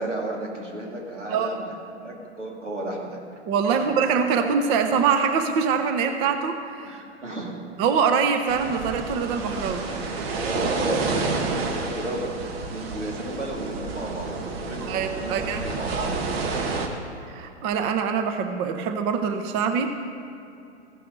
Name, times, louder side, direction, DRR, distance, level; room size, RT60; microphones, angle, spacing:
voice 1, 0.0-3.2 3.6-3.9 6.8-7.6 10.4-16.5, right 1 dB, 85° right, -1 dB, 2.4 m, -33 dB
voice 2, 3.5-7.0 7.8-9.8 14.9-16.1 17.3-19.9, right 6 dB, 15° right, 7 dB, 0.4 m, -24 dB
sound 1, 8.5-16.9, right 3 dB, 55° right, 1.4 m, -29 dB
15.5 x 5.8 x 5.1 m, 2.6 s
hypercardioid pair, 120°, 35 cm